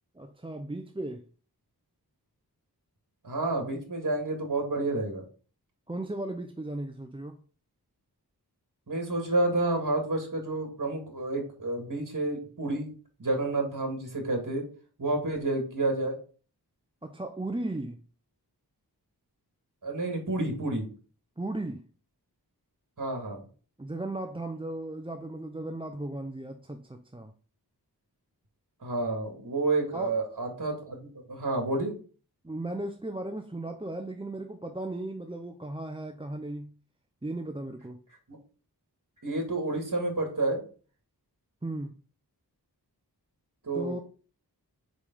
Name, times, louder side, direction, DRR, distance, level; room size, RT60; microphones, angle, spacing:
voice 1, 0.1-1.2 5.9-7.4 17.0-18.0 21.4-21.8 23.8-27.3 29.9-30.1 32.4-36.7 37.2-38.0 41.6-41.9 43.7-44.0, right 2 dB, 15° right, 0.6 m, -36 dB
voice 2, 3.2-5.2 8.9-12.9 13.2-14.6 15.0-16.2 19.8-20.9 23.0-23.4 28.8-31.9 39.2-40.6 43.6-44.0, right 2 dB, 55° right, 2.2 m, -29 dB
5.2 x 5.0 x 5.4 m
wide cardioid pair, 50°, 39 cm